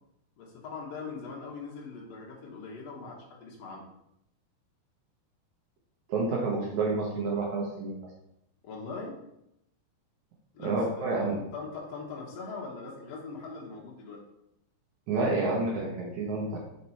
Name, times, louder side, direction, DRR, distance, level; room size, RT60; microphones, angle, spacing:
voice 1, 0.4-3.8 8.6-9.2 10.5-11.2 11.5-14.2, left 4 dB, 60° left, -2 dB, 1.8 m, -41 dB
voice 2, 6.1-7.9 10.6-11.4 15.1-16.6, right 3 dB, 70° right, -2 dB, 1.9 m, -29 dB
5.7 x 4.9 x 4.2 m, 0.80 s
omnidirectional pair, 4.4 m